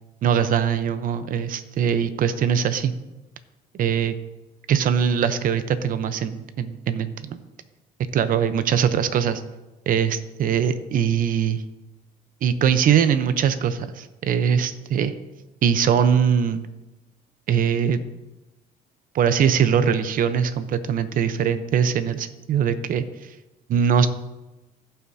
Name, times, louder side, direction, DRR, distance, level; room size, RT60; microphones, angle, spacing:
voice 1, 0.2-2.9 3.7-4.1 4.7-7.4 8.1-9.4 9.9-11.6 12.4-15.1 15.6-16.6 17.5-18.0 19.1-23.4 23.7-24.1, right 8 dB, 55° right, 12 dB, 0.7 m, -22 dB
15.0 x 5.8 x 2.7 m, 1.1 s
cardioid pair, 110°, 17 cm